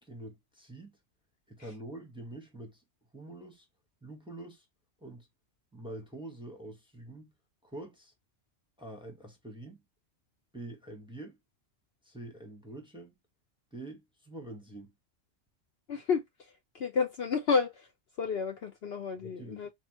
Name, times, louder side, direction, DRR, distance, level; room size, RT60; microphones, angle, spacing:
voice 1, 0.0-1.0 1.5-2.8 3.1-3.7 4.0-4.6 5.0-5.3 5.7-7.3 7.6-8.1 8.8-9.8 10.5-11.4 12.0-13.1 13.7-14.9 19.2-19.7, right 1 dB, 5° right, 1.0 m, -45 dB
voice 2, 15.9-16.2 16.7-17.9 18.2-19.7, left 5 dB, 60° left, 0.8 m, -30 dB
3.9 x 3.8 x 2.9 m
omnidirectional pair, 1.3 m